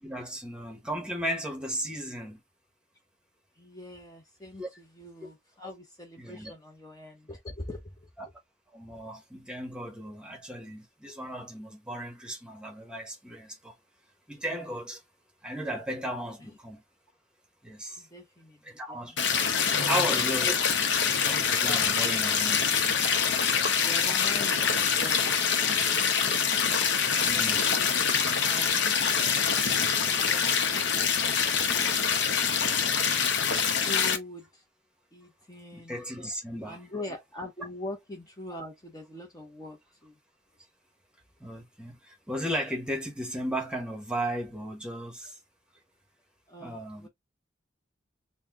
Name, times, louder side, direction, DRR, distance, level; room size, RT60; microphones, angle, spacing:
voice 1, 0.0-2.4 4.6-4.7 6.2-6.5 8.2-8.3 8.7-13.7 14.3-15.0 15.4-16.8 17.6-18.0 18.6-19.5 19.9-20.5 21.2-22.6 27.2-27.6 35.7-36.8 41.4-45.4 46.6-47.1, equal, 5° right, 1.0 m, -35 dB
voice 2, 3.6-7.9 16.4-16.6 18.0-20.1 23.8-26.1 28.5-29.0 30.0-32.4 33.7-34.6 35.1-36.0 36.6-40.2 46.5-47.1, left 1 dB, 20° left, 0.8 m, -43 dB
sound 1, 19.2-34.2, left 6 dB, 65° left, 0.8 m, -25 dB
4.2 x 2.2 x 3.5 m
head